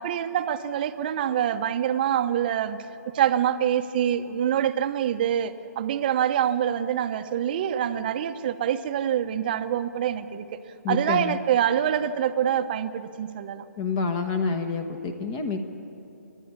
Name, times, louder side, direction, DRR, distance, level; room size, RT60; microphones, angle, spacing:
voice 1, 0.0-2.9 3.1-10.5 10.9-13.6, right 10 dB, 30° right, 10 dB, 0.9 m, -25 dB
voice 2, 10.8-11.4 13.8-15.6, left 4 dB, 20° left, 7 dB, 1.2 m, -28 dB
30.0 x 11.5 x 9.6 m, 2.9 s
hypercardioid pair, 160°, 9 cm